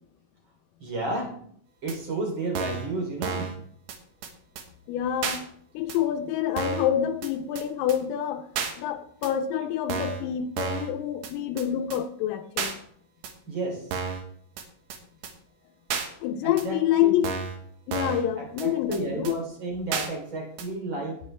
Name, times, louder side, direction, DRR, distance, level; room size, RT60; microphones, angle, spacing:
voice 1, 0.8-1.3 1.8-3.5 13.5-13.9 16.4-17.1 18.4-21.3, right 2 dB, 30° right, 0 dB, 2.7 m, -32 dB
sound 1, 1.9-2.0 2.6-2.9 3.2-3.6 3.9-4.0 4.2-4.3 4.6-4.7 5.2-5.4 5.9-6.0 6.6-6.9 7.2-7.3 7.6-7.7 7.9-8.0 8.6-8.7 9.2-9.3 9.9-10.2 10.6-10.9 11.2-11.3 11.6-11.7 11.9-12.0 12.6-12.7 13.2-13.3 13.9-14.2 14.6-14.7 14.9-15.0 15.2-15.3 15.9-16.1 16.6-16.7 17.2-17.6 17.9-18.2 18.6-18.7 18.9-19.0 19.3-19.4 19.9-20.1 20.6-20.7, right 6 dB, 70° right, 3.0 m, -31 dB
voice 2, 4.9-5.4 5.7-8.4 8.8-12.8 16.2-17.3 17.9-19.4, left 10 dB, 85° left, 5 dB, 3.4 m, -27 dB
18.0 x 8.1 x 3.3 m, 0.64 s
omnidirectional pair, 5.8 m